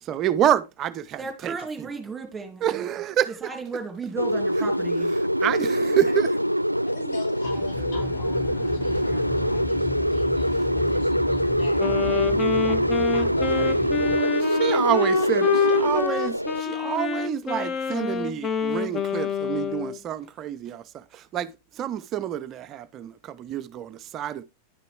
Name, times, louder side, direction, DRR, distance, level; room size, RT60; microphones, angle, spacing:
voice 1, 0.0-1.9 2.6-3.5 5.4-6.3 14.6-24.4, right 11 dB, 35° right, 0.4 m, -27 dB
voice 2, 1.2-2.8 3.4-5.1, right 4 dB, 15° right, 2.3 m, -34 dB
sound 1, 4.2-16.6, equal, 90° right, 0.4 m, -24 dB
voice 3, 6.9-12.2 12.6-14.4 14.7-14.8, left 4 dB, 60° left, 5.3 m, -41 dB
Aircraft, 7.4-14.2, left 6 dB, 45° left, 1.3 m, -35 dB
Wind instrument woodwind instrument, 11.8-20.0, left 7 dB, 25° left, 0.8 m, -28 dB
10.5 x 6.7 x 3.2 m
figure-of-eight pair, 90°, 0 cm